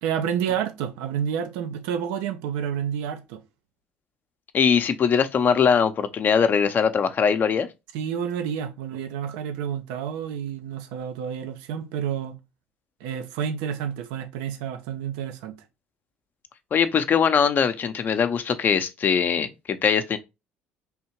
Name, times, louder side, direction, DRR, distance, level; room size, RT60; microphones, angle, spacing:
voice 1, 0.0-3.4 7.9-12.4 13.0-15.6, right 8 dB, 90° right, 0.7 m, -29 dB
voice 2, 4.5-7.7 16.7-20.2, left 6 dB, 45° left, 0.7 m, -21 dB
3.6 x 2.7 x 4.5 m
supercardioid pair, 80°, 4 cm